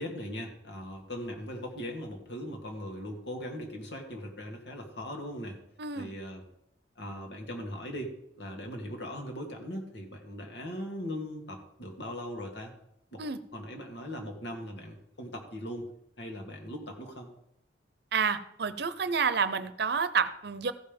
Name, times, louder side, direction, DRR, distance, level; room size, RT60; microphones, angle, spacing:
voice 1, 0.0-5.6 5.9-6.4 7.0-12.7 13.1-13.2 13.5-15.9 16.2-17.3, equal, 70° left, 2 dB, 2.3 m, -39 dB
voice 2, 5.8-6.1 13.2-13.4 18.1-20.7, right 5 dB, 65° right, 13 dB, 0.7 m, -29 dB
14.5 x 5.5 x 5.3 m, 0.76 s
head